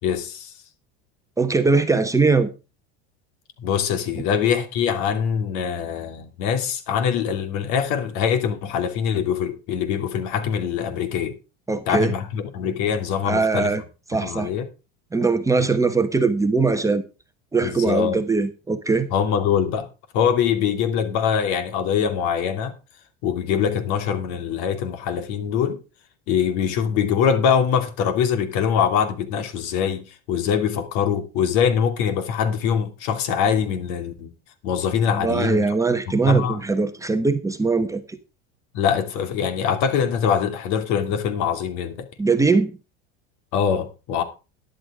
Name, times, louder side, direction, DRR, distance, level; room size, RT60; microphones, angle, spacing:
voice 1, 0.0-0.5 3.6-11.4 11.9-13.7 14.2-14.7 15.6-15.7 17.6-18.2 19.1-19.9 20.1-22.7 23.2-25.8 26.3-34.3 34.6-35.7 36.3-36.6 38.7-42.1 43.5-44.2, left 7 dB, 65° left, 2.8 m, -23 dB
voice 2, 1.4-2.5 11.7-12.1 13.2-13.8 14.1-14.5 15.1-17.0 17.5-19.1 35.1-38.2 42.2-42.8, right 4 dB, 10° right, 1.1 m, -21 dB
13.5 x 11.0 x 3.7 m
supercardioid pair, 130°, 31 cm